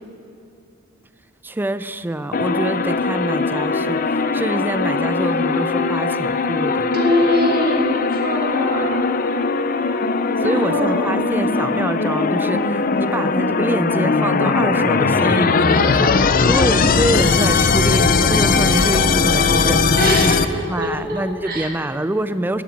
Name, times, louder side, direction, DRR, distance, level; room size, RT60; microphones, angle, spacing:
voice 1, 1.4-6.9 10.4-20.4 20.7-22.6, right 1 dB, 10° right, 13 dB, 0.4 m, -25 dB
sound 1, 2.3-20.4, left 4 dB, 45° left, 0.5 m, -19 dB
voice 2, 6.9-9.1 10.4-11.5 20.0-21.7, equal, 50° right, 0 dB, 1.8 m, -23 dB
17.5 x 7.2 x 7.3 m, 2.7 s
head